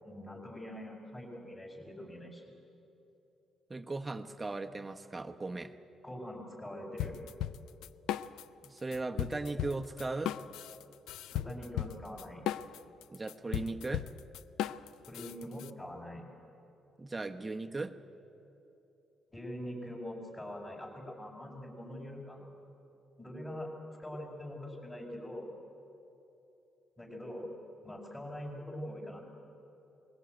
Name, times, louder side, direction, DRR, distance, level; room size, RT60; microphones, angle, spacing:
voice 1, 0.0-2.5 6.0-7.2 11.3-12.4 15.1-16.2 19.3-22.4 23.2-23.7 24.0-25.6 27.0-27.5 27.8-29.2, left 1 dB, 15° left, -6 dB, 5.0 m, -43 dB
voice 2, 3.7-5.7 8.6-10.3 13.1-14.1 17.0-18.0, right 3 dB, 20° right, 7 dB, 1.1 m, -37 dB
sound 1, 7.0-8.7 8.9-15.7, left 12 dB, 90° left, 0.4 m, -37 dB
21.0 x 17.0 x 9.3 m, 3.0 s
cardioid pair, 90°, 0 cm